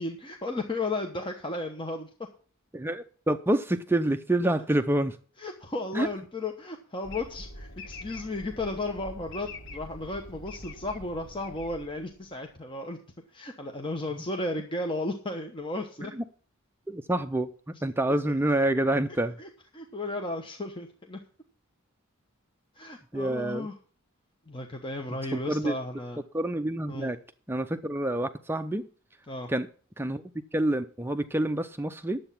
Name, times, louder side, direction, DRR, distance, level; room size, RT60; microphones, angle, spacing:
voice 1, 0.0-2.1 5.4-13.0 13.3-16.1 19.4-19.5 19.7-21.2 22.7-23.7 24.5-26.2 26.9-27.1 29.3-29.5, left 2 dB, 25° left, 3 dB, 1.1 m, -34 dB
voice 2, 2.7-5.2 5.9-6.1 16.1-16.2 16.9-19.4 23.1-23.7 25.5-25.8 26.3-27.2 27.5-28.9 29.5-29.7 30.0-30.2 30.5-32.2, right 1 dB, 10° right, 8 dB, 0.4 m, -27 dB
sound 1, 7.0-12.4, left 1 dB, 60° left, 1.8 m, -44 dB
10.5 x 7.9 x 5.7 m, 0.42 s
head